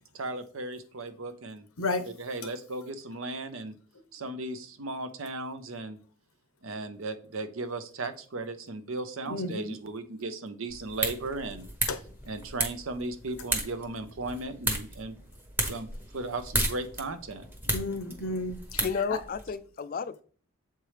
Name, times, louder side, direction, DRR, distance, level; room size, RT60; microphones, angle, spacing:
voice 1, 0.1-1.7 2.0-3.7 4.1-6.0 6.6-11.7 12.2-15.2 15.6-17.5, right 2 dB, 75° right, 9 dB, 0.8 m, -36 dB
voice 2, 9.3-9.7 11.9-12.0 17.7-18.8, left 2 dB, 85° left, 10 dB, 0.8 m, -32 dB
sound 1, 10.7-19.5, right 1 dB, 10° right, 0.9 m, -34 dB
voice 3, 18.8-20.2, left 5 dB, 40° left, 14 dB, 0.3 m, -32 dB
7.5 x 4.6 x 3.2 m, 0.43 s
head